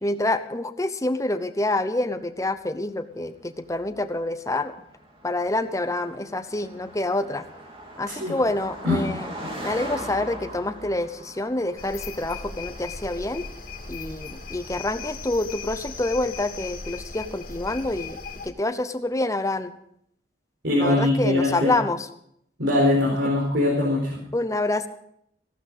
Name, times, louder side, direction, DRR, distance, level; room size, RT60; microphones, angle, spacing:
voice 1, 0.0-4.7 5.2-7.5 8.0-9.3 9.6-13.4 13.9-19.7 20.8-22.1 24.3-24.9, left 2 dB, 15° left, 10 dB, 0.8 m, -27 dB
Car passing by, 3.0-16.8, right 1 dB, 30° right, 3.0 m, -42 dB
sound 1, 11.8-18.5, left 4 dB, 50° left, 2.3 m, -38 dB
voice 2, 20.6-21.7 22.6-24.2, left 2 dB, 75° right, -3 dB, 4.3 m, -22 dB
16.5 x 12.5 x 5.1 m, 0.71 s
head